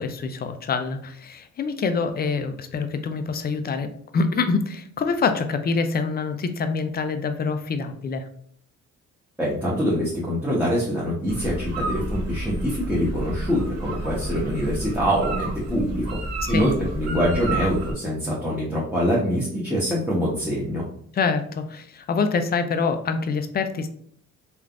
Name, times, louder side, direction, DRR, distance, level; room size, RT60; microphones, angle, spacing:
voice 1, 0.0-3.9 4.1-8.3 16.5-16.7 21.1-23.9, left 4 dB, 35° left, 8 dB, 0.4 m, -25 dB
voice 2, 9.4-16.2 16.5-20.8, equal, 5° right, -8 dB, 0.8 m, -24 dB
sound 1, 11.3-17.9, right 1 dB, 55° right, 1.1 m, -30 dB
3.2 x 2.4 x 2.4 m, 0.64 s
cardioid pair, 90°, 30 cm